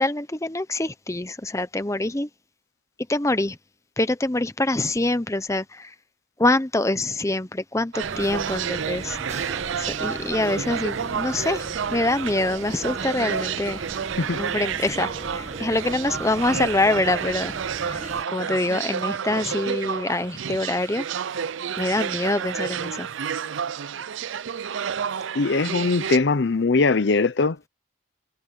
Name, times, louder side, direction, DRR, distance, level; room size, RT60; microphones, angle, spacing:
voice 1, 0.0-2.3 3.1-3.6 4.0-5.9 6.4-9.2 9.8-11.6 11.9-13.8 14.4-17.6 17.8-21.0 21.8-23.1, left 2 dB, 15° left, 0.7 m, -25 dB
sound 1, 7.9-26.2, right 7 dB, 75° right, 0.5 m, -30 dB
sound 2, 8.0-18.2, right 1 dB, 35° right, 2.0 m, -38 dB
voice 2, 25.3-27.6, left 3 dB, 60° left, 0.6 m, -21 dB
head